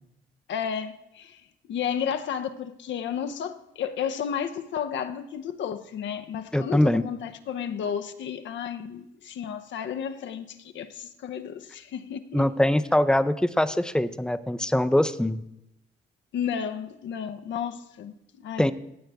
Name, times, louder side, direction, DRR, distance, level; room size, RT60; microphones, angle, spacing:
voice 1, 0.5-1.4 1.7-12.5 16.3-18.7, left 8 dB, 70° left, 0.8 m, -32 dB
voice 2, 6.5-7.0 12.3-15.4 18.6-18.7, left 1 dB, 5° left, 0.5 m, -22 dB
15.5 x 7.8 x 3.5 m
cardioid pair, 90°, 20 cm